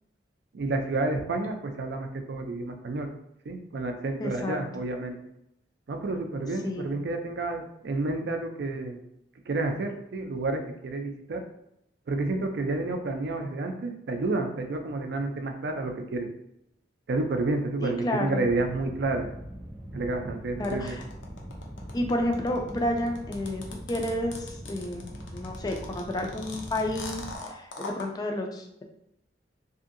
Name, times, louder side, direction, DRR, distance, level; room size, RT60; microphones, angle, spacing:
voice 1, 0.5-3.1 3.5-5.2 5.9-9.0 9.5-11.4 12.1-16.3 17.1-19.3 19.9-21.0, right 2 dB, 60° right, 5 dB, 0.4 m, -30 dB
voice 2, 4.2-4.6 6.6-6.9 17.8-18.5 20.6-21.0 21.9-23.6 23.9-28.8, left 1 dB, 20° left, 3 dB, 0.3 m, -30 dB
Distant Rumble, 18.5-27.4, equal, 20° right, 0.8 m, -42 dB
sound 1, 20.6-28.1, left 3 dB, 90° left, 0.5 m, -41 dB
2.7 x 2.6 x 2.5 m, 0.80 s
head